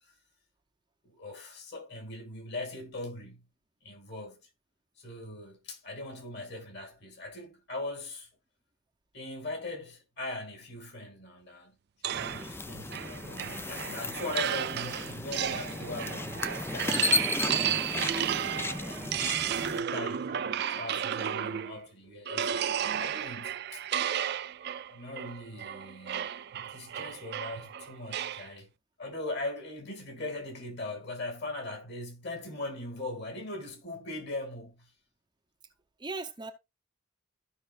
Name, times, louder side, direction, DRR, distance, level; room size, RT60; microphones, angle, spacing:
voice 1, 1.0-3.5 3.8-4.4 5.0-8.3 9.1-11.7 12.0-18.0 18.7-19.3 19.8-23.8 24.9-28.7 29.0-34.9, left 2 dB, 55° left, 2.4 m, -40 dB
sound 1, 12.0-21.8 22.3-28.5, right 9 dB, 55° right, 0.4 m, -33 dB
sound 2, 12.1-19.8, left 3 dB, 10° left, 0.4 m, -34 dB
voice 2, 18.8-19.4 36.0-36.5, right 3 dB, 20° right, 0.8 m, -40 dB
14.5 x 5.4 x 2.5 m
head